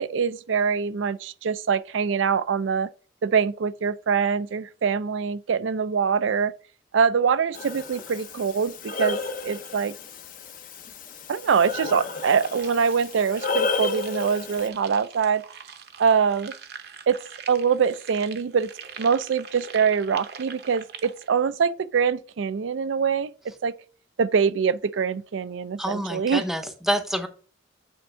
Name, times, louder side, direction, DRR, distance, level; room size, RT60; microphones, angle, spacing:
voice 1, 0.0-2.9 3.2-6.5 6.9-9.2 9.4-9.9 11.3-15.4 16.0-16.5 17.1-17.2 17.5-18.7 19.0-23.3 23.6-23.7 24.2-26.4, right 6 dB, 85° right, 0.4 m, -24 dB
Breathing, 7.5-14.7, left 4 dB, 45° left, 0.7 m, -32 dB
sound 1, 12.1-21.3, right 6 dB, 55° right, 0.8 m, -43 dB
voice 2, 25.8-27.3, equal, ahead, 0.7 m, -27 dB
8.6 x 3.5 x 4.4 m
head